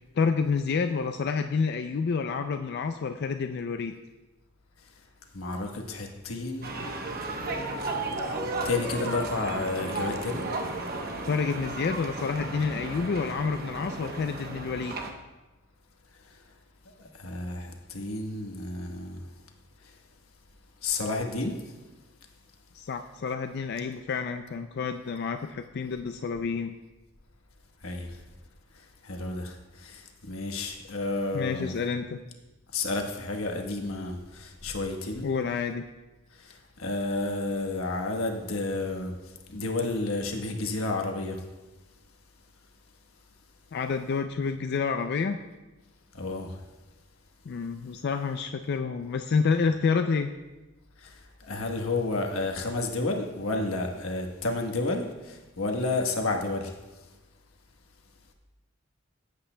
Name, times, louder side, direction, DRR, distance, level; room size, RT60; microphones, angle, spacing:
voice 1, 0.2-3.9 11.3-14.9 22.7-26.7 31.3-32.2 35.2-35.8 43.7-45.4 47.5-50.3, left 5 dB, 50° left, 7 dB, 0.4 m, -29 dB
voice 2, 5.3-6.7 8.2-8.3 8.6-10.5 17.0-19.2 20.8-21.5 27.8-28.1 29.0-31.8 32.7-35.3 36.4-39.1 39.5-41.4 46.2-46.6 51.0-51.1 51.5-56.7, left 2 dB, 85° left, 3 dB, 1.2 m, -31 dB
sound 1, 6.6-15.1, right 2 dB, 45° right, 0.9 m, -34 dB
16.0 x 8.3 x 2.2 m, 1.1 s
head